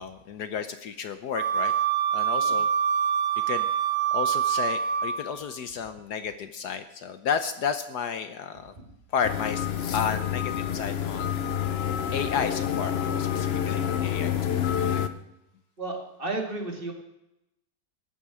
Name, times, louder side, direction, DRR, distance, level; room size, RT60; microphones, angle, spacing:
voice 1, 0.0-1.7 2.1-2.7 3.5-3.7 4.1-8.7 9.1-9.7 9.9-11.3 12.1-15.0, left 7 dB, 65° left, 9 dB, 1.3 m, -32 dB
Wind instrument woodwind instrument, 1.3-5.4, right 8 dB, 85° right, 3.3 m, -25 dB
sound 1, 9.2-15.1, left 9 dB, 50° left, 0.7 m, -28 dB
voice 2, 15.8-16.9, right 2 dB, 30° right, 1 dB, 2.7 m, -34 dB
15.0 x 10.5 x 6.2 m, 0.88 s
omnidirectional pair, 2.0 m